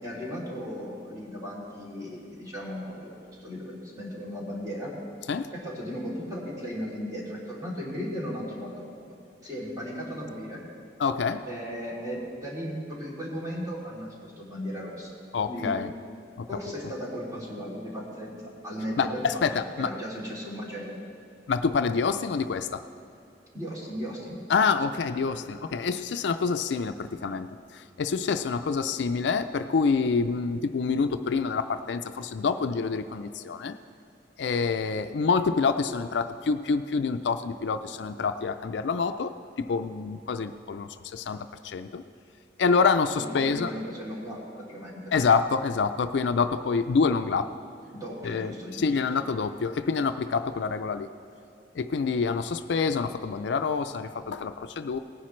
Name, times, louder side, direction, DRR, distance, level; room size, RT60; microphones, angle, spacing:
voice 1, 0.0-4.9 5.5-9.0 9.4-10.6 11.5-15.2 15.5-15.8 16.5-18.4 18.6-21.0 23.5-24.4 43.2-45.2 47.9-48.9, equal, 20° right, -6 dB, 2.8 m, -36 dB
voice 2, 11.0-11.5 15.3-15.9 16.4-16.5 19.0-19.9 21.5-22.8 24.5-33.8 34.4-42.0 42.6-43.7 45.1-47.5 48.2-51.1 51.8-55.0, left 5 dB, 70° left, 10 dB, 0.4 m, -27 dB
18.5 x 10.0 x 3.2 m, 2.7 s
head